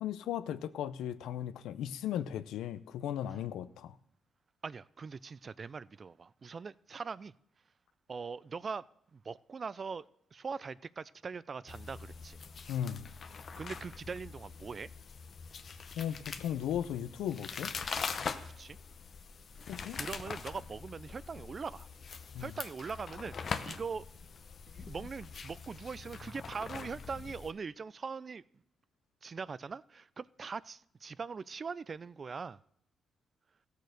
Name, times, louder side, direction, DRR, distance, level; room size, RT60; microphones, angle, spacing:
voice 1, 0.0-4.0 12.7-13.1 16.0-17.8 19.7-20.0 22.3-22.5, left 10 dB, 85° left, 0.5 m, -36 dB
voice 2, 4.6-7.3 8.1-8.9 9.1-12.4 13.6-14.9 18.4-18.8 19.7-21.9 22.4-24.1 24.7-28.4 29.2-32.6, right 5 dB, 40° right, 0.4 m, -42 dB
sound 1, 11.7-27.5, left 5 dB, 50° left, 0.8 m, -43 dB
15.0 x 6.6 x 6.5 m
cardioid pair, 75°, 0 cm